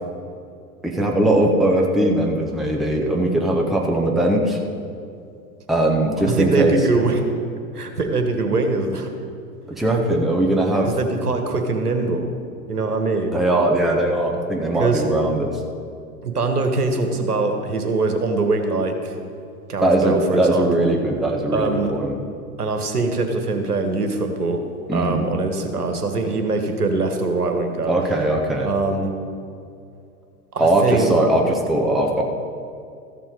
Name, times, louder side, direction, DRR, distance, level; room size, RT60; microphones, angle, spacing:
voice 1, 0.8-4.6 5.7-6.8 9.7-11.0 13.3-15.6 19.8-22.2 24.9-25.2 27.9-28.7 30.6-32.2, right 1 dB, ahead, 0 dB, 0.8 m, -20 dB
voice 2, 6.3-7.2 7.7-9.1 10.8-12.3 12.7-13.4 14.8-15.0 16.2-19.2 19.7-20.9 21.5-22.0 22.6-24.6 24.9-27.9 28.6-29.1 30.5-31.1, right 3 dB, 75° right, 5 dB, 1.4 m, -22 dB
14.0 x 7.2 x 5.1 m, 2.4 s
figure-of-eight pair, 95°, 46 cm